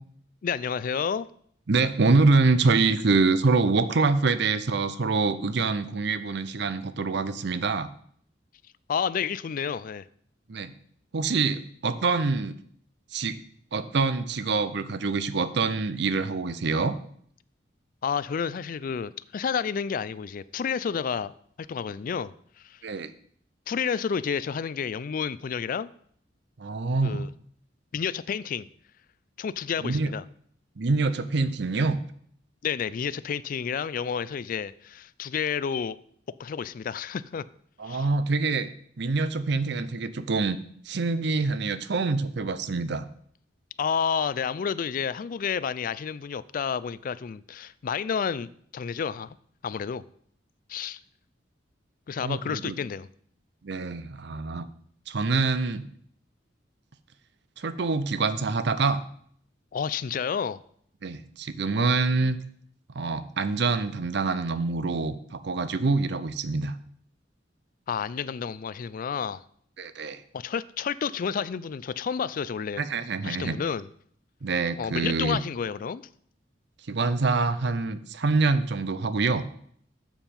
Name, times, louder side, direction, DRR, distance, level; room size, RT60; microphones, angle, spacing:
voice 1, 0.4-1.3 8.9-10.0 18.0-21.3 21.7-22.3 22.6-22.8 23.7-25.9 27.0-27.3 27.9-28.7 29.4-30.2 32.6-36.0 36.4-37.4 37.8-38.1 43.8-49.3 49.6-50.0 50.7-51.0 52.1-53.1 59.7-60.6 67.9-69.4 70.3-72.8 73.2-73.9 74.8-76.0, left 7 dB, 45° left, 0.3 m, -30 dB
voice 2, 1.7-7.9 10.5-10.7 11.1-12.5 13.1-13.4 13.7-17.0 22.8-23.1 26.6-27.3 29.8-30.1 30.8-32.0 37.8-38.7 39.0-40.6 40.8-43.1 52.2-52.8 53.6-54.7 55.1-55.9 57.6-59.0 61.0-62.4 62.9-66.8 69.8-70.2 72.8-73.6 74.4-75.4 76.9-79.5, right 3 dB, 60° right, 0.6 m, -25 dB
7.4 x 7.1 x 5.3 m
head